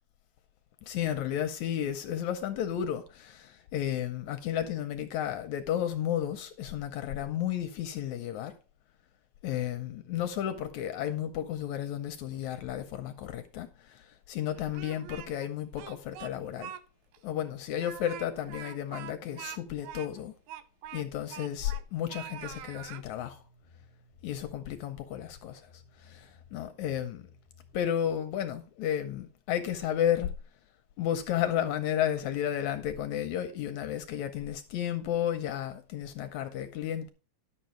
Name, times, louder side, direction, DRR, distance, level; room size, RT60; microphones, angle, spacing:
voice 1, 0.9-8.5 9.4-16.7 17.2-20.3 20.9-23.4 24.2-27.3 27.7-30.3 31.0-37.1, left 10 dB, 75° left, 1.9 m, -33 dB
Speech, 14.5-15.5 15.8-16.8 17.1-17.2 17.7-21.8 22.1-23.0, right 10 dB, 75° right, 1.8 m, -44 dB
sound 1, 22.5-27.8, left 4 dB, 55° right, 8.6 m, -59 dB
11.5 x 7.0 x 4.4 m
omnidirectional pair, 3.9 m